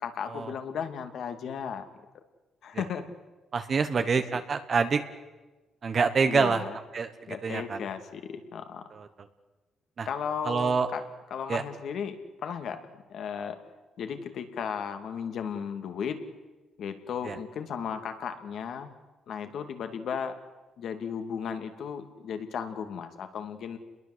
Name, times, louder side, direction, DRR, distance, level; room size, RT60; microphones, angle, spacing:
voice 1, 0.0-1.8 2.6-3.0 3.7-4.1 6.2-6.8 7.3-8.8 10.0-11.0 11.3-13.6 14.0-16.2 16.8-18.9 19.3-20.3 20.8-23.8, left 7 dB, 60° left, 7 dB, 2.6 m, -35 dB
voice 2, 3.5-5.0 5.8-6.6 6.9-7.1 7.4-7.8 8.9-9.1 10.0-10.1 10.4-10.9 11.5-11.6 17.2-17.4, right 5 dB, 35° right, 9 dB, 1.3 m, -26 dB
29.5 x 21.5 x 8.1 m, 1.2 s
cardioid pair, 140°, 0 cm